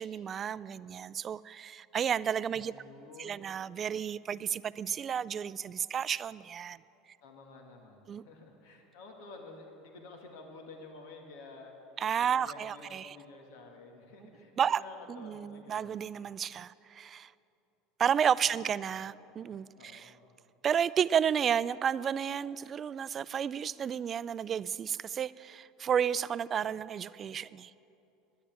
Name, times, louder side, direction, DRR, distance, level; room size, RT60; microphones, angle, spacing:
voice 1, 0.0-2.7 3.2-6.8 8.1-8.2 12.0-13.2 14.6-14.8 15.1-17.3 18.0-20.1 20.6-27.7, right 8 dB, 35° right, 18 dB, 0.3 m, -32 dB
voice 2, 2.6-3.4 7.2-11.7 12.2-16.0 18.4-18.5 18.8-19.0 19.7-20.2, left 3 dB, 80° left, 2 dB, 1.9 m, -51 dB
10.0 x 10.0 x 8.7 m, 2.8 s
supercardioid pair, 100°, 0 cm